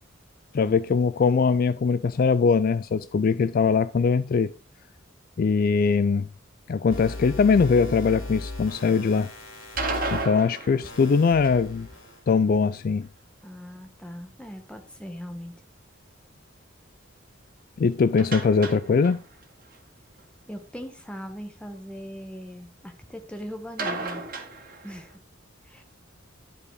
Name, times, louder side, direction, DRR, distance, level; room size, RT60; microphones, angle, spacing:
voice 1, 0.5-4.5 5.4-6.3 6.7-9.3 10.1-11.9 12.3-13.1 17.8-19.2, left 5 dB, 45° left, 0.3 m, -21 dB
sound 1, 6.9-10.2 10.8-12.2, left 2 dB, 80° left, 3.1 m, -37 dB
sound 2, 9.6-11.8 18.2-19.4 19.7-19.8 20.2-20.3 23.8-25.1, right 3 dB, 45° right, 2.1 m, -33 dB
voice 2, 13.4-15.5 20.5-24.2 24.8-25.1 25.6-25.8, equal, 5° left, 1.2 m, -40 dB
11.0 x 4.9 x 4.8 m
head